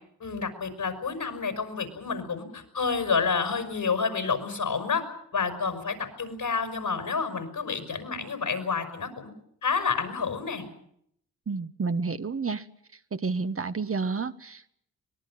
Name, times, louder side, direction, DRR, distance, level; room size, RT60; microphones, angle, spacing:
voice 1, 0.2-5.0 5.3-9.3 9.6-10.6, left 5 dB, 65° left, 8 dB, 5.9 m, -29 dB
voice 2, 11.5-12.6 13.1-14.7, right 4 dB, 35° right, 10 dB, 1.2 m, -30 dB
24.5 x 20.0 x 7.7 m, 0.70 s
supercardioid pair, 45°, 37 cm